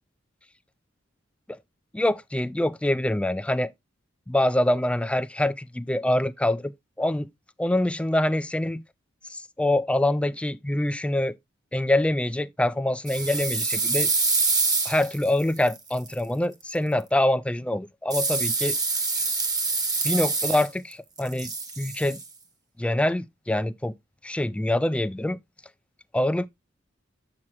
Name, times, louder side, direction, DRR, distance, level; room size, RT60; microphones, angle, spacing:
voice 1, 1.9-3.7 4.3-6.7 7.0-7.3 7.6-8.8 9.3-11.3 11.7-14.1 14.9-18.8 20.0-22.2 22.8-23.9 24.2-25.4 26.1-26.5, left 1 dB, 5° left, 0.3 m, -25 dB
sound 1, 13.1-16.1 18.1-20.9 21.2-22.2, right 4 dB, 20° right, 1.0 m, -26 dB
7.2 x 6.1 x 2.8 m
head